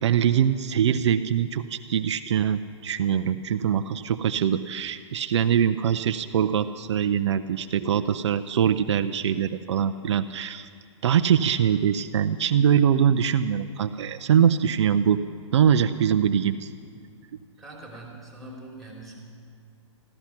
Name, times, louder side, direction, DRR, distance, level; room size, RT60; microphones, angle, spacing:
voice 1, 0.0-10.7 11.0-15.2 15.5-16.7, right 8 dB, 65° right, 9 dB, 0.5 m, -23 dB
voice 2, 17.6-19.2, right 2 dB, ahead, -3 dB, 3.1 m, -43 dB
14.5 x 13.0 x 5.9 m, 2.3 s
hypercardioid pair, 145°, 16 cm